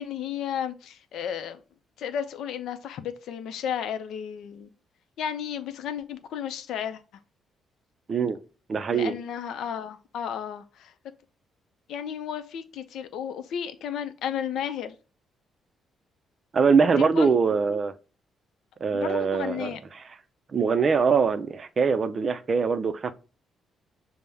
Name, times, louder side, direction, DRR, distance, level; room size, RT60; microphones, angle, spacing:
voice 1, 0.0-1.6 2.0-4.7 5.2-7.0 8.9-10.6 11.9-14.9 17.2-17.3 18.9-19.8, left 8 dB, 80° left, 0.5 m, -33 dB
voice 2, 8.7-9.1 16.5-17.9 18.8-20.2 20.5-23.1, right 5 dB, 40° right, 0.4 m, -23 dB
5.4 x 2.0 x 3.4 m
cardioid pair, 90°, 0 cm